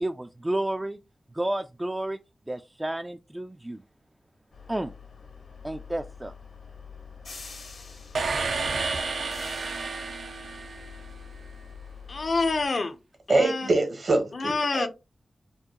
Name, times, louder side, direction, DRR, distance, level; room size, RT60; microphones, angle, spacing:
voice 1, 0.0-1.0 1.3-2.2 2.5-3.8 4.7-4.9 5.6-6.3, right 1 dB, 20° right, 0.3 m, -31 dB
sound 1, 4.5-12.7, left 5 dB, 85° left, 1.5 m, -45 dB
sound 2, 8.1-11.3, right 4 dB, 80° right, 0.5 m, -31 dB
voice 2, 12.1-13.0 13.3-13.7 14.3-14.9, left 3 dB, 60° left, 0.6 m, -27 dB
voice 3, 13.3-14.9, right 2 dB, 65° right, 1.1 m, -24 dB
4.6 x 2.1 x 2.9 m
cardioid pair, 55°, 0 cm